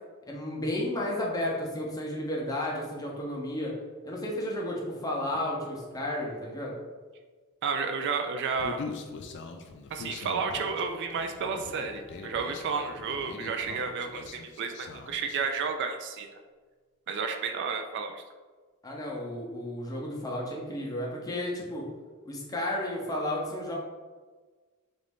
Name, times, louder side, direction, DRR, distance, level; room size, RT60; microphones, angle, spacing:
voice 1, 0.3-3.8 4.0-6.7 18.8-21.9 22.2-23.7, left 1 dB, 15° left, -2 dB, 0.7 m, -32 dB
voice 2, 7.6-8.8 9.9-16.3 17.1-18.2, right 5 dB, 55° right, 5 dB, 0.3 m, -31 dB
Human voice, 8.6-15.4, left 4 dB, 55° left, 0.4 m, -42 dB
Bowed string instrument, 10.5-15.2, right 1 dB, 70° right, 1.4 m, -53 dB
4.0 x 2.6 x 3.4 m, 1.4 s
head